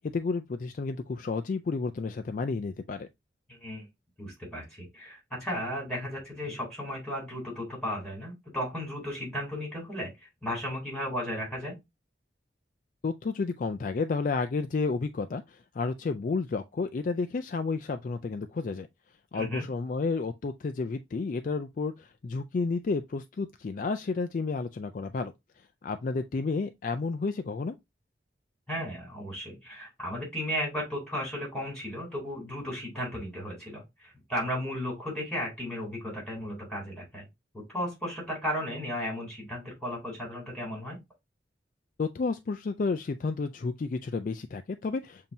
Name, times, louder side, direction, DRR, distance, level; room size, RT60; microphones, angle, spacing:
voice 1, 0.0-3.1 13.0-18.9 19.3-25.3 25.8-27.8 42.0-45.3, left 4 dB, 45° left, 0.3 m, -31 dB
voice 2, 3.5-3.9 4.2-10.1 10.4-11.7 19.3-19.6 28.7-37.2 37.5-41.0, equal, 5° left, 3.3 m, -35 dB
7.1 x 2.8 x 2.6 m
head